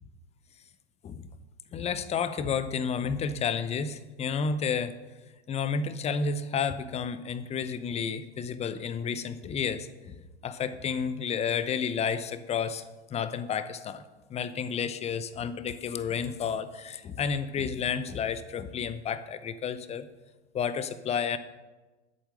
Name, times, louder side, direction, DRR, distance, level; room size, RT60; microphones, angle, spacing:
voice 1, 1.7-5.0 5.5-10.2 10.4-12.8 13.1-14.0 14.3-20.1 20.5-21.4, left 6 dB, 20° left, 13 dB, 0.7 m, -31 dB
11.5 x 8.2 x 6.3 m, 1.2 s
figure-of-eight pair, 90°, 34 cm